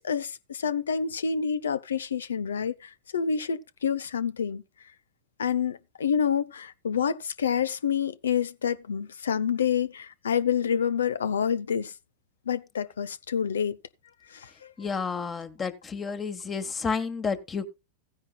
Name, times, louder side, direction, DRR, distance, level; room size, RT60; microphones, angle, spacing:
voice 1, 0.0-4.6 5.4-11.9 12.5-13.8 14.3-14.7, left 7 dB, 80° left, 0.7 m, -28 dB
voice 2, 14.8-17.7, left 5 dB, 25° left, 1.4 m, -31 dB
16.0 x 9.8 x 2.3 m
hypercardioid pair, 95°, 0 cm